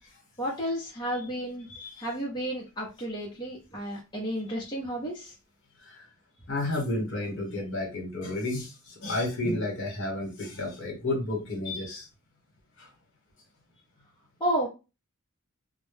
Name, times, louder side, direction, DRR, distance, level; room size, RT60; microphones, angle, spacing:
voice 1, 0.4-1.7 2.0-5.3 14.4-14.7, equal, 20° left, -5 dB, 0.7 m, -32 dB
voice 2, 1.7-2.0 5.8-6.1 6.5-12.1 12.8-12.9, left 2 dB, 55° left, 0 dB, 1.1 m, -31 dB
2.1 x 2.1 x 3.2 m, 0.28 s
head